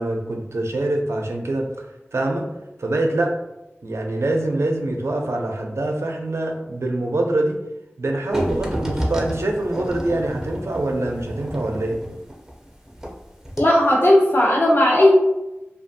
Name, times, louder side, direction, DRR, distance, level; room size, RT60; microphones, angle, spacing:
voice 1, 0.0-1.7 2.1-2.5 2.8-3.4 3.8-7.6 8.0-12.0, right 2 dB, 80° right, 2 dB, 0.4 m, -24 dB
sound 1, 8.3-13.2 13.5-13.6, equal, 10° right, 0.5 m, -30 dB
voice 2, 13.6-15.1, left 1 dB, 50° left, -3 dB, 0.6 m, -15 dB
2.5 x 2.3 x 2.6 m, 0.94 s
wide cardioid pair, 40°, 5 cm